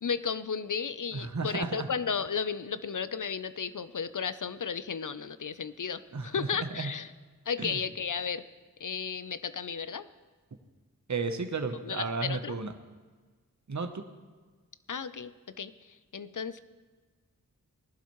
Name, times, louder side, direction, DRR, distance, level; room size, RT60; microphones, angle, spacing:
voice 1, 0.0-7.1 7.5-8.4 8.8-10.1 11.8-12.6 14.9-15.3 15.6-16.6, left 6 dB, 60° left, 14 dB, 0.6 m, -34 dB
voice 2, 1.1-1.9 6.1-6.9 7.6-7.8 11.1-12.7 13.7-14.0, right 4 dB, 55° right, 7 dB, 1.0 m, -33 dB
19.0 x 11.5 x 3.1 m, 1.4 s
wide cardioid pair, 45°, 35 cm